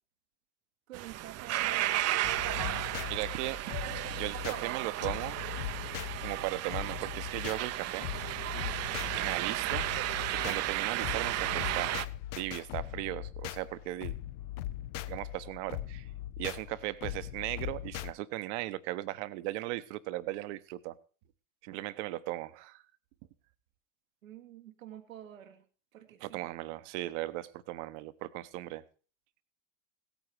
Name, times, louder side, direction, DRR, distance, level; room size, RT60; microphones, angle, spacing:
sound 1, 0.9-12.1, right 14 dB, 40° right, 0.7 m, -34 dB
voice 1, 0.9-2.2 8.5-8.9 24.2-25.6 25.9-26.5, right 12 dB, 85° right, 7 dB, 1.4 m, -49 dB
sound 2, 2.2-18.1, left 13 dB, 55° left, 0.8 m, -40 dB
voice 2, 3.1-3.6 4.1-5.4 6.2-8.1 9.1-9.9 10.4-11.9 12.4-14.1 15.1-16.1 16.4-20.9 21.6-22.8 26.2-28.8, right 17 dB, 60° right, 14 dB, 1.1 m, -37 dB
16.5 x 9.2 x 4.6 m, 0.38 s
hypercardioid pair, 85°, 39 cm